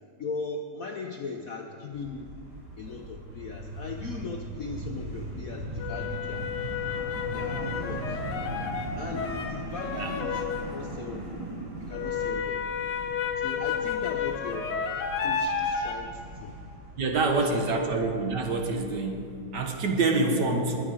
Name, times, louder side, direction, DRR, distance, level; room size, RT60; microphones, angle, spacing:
voice 1, 0.2-2.3 2.8-6.5 7.3-8.2 8.9-11.2 11.8-12.7 13.4-14.7 15.2-16.6 17.2-17.7 20.2-20.4, left 4 dB, 60° left, 2 dB, 0.9 m, -38 dB
sound 1, 1.9-19.7, right 1 dB, 25° right, 4.2 m, -39 dB
sound 2, 2.9-3.0 5.8-10.8 11.9-15.9, left 6 dB, 90° left, 2.1 m, -31 dB
voice 2, 17.0-20.8, right 3 dB, 60° right, 3 dB, 1.7 m, -26 dB
20.0 x 9.0 x 5.0 m, 2.4 s
omnidirectional pair, 2.3 m